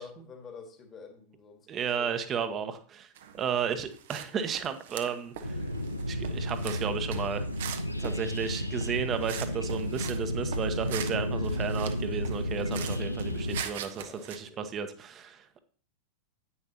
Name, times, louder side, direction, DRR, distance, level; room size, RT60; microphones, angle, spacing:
voice 1, 0.0-2.2 2.5-2.7 14.0-14.7, left 4 dB, 25° left, 5 dB, 1.9 m, -48 dB
voice 2, 1.7-3.1 3.3-5.6 6.1-7.5 8.0-15.6, right 7 dB, 30° right, 9 dB, 1.1 m, -33 dB
sound 1, 3.2-4.3 4.5-10.2 10.5-14.4, right 9 dB, 55° right, 1.0 m, -42 dB
sound 2, 5.4-13.6, left 1 dB, 85° left, 0.7 m, -32 dB
9.8 x 9.4 x 2.9 m, 0.43 s
figure-of-eight pair, 90°, 0 cm